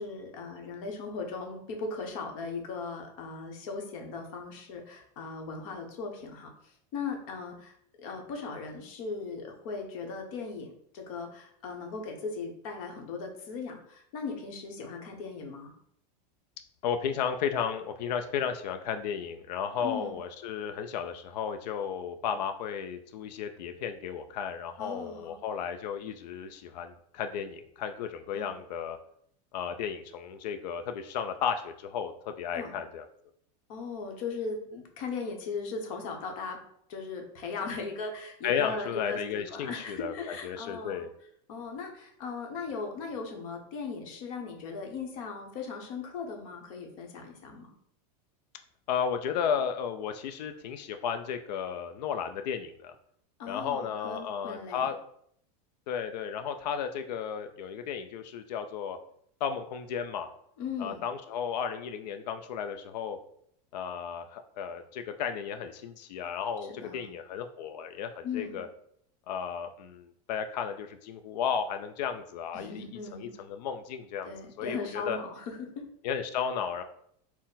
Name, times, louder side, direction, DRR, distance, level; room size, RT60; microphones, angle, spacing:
voice 1, 0.0-6.5 6.9-7.7 8.0-15.7 19.8-20.2 24.8-25.4 28.3-28.5 32.5-32.8 33.7-36.6 36.9-41.0 41.5-47.7 53.4-54.9 60.6-61.0 66.8-67.1 68.2-68.6 72.5-73.3 74.2-75.9, left 4 dB, 55° left, 3 dB, 0.9 m, -38 dB
voice 2, 16.8-29.0 29.5-33.1 38.4-41.1 48.9-52.9 53.4-55.0 55.9-59.0 59.4-60.3 60.8-63.2 63.7-68.7 69.3-75.2 76.0-76.8, left 7 dB, 85° left, 7 dB, 0.4 m, -34 dB
4.0 x 2.1 x 4.0 m, 0.68 s
supercardioid pair, 160°, 21 cm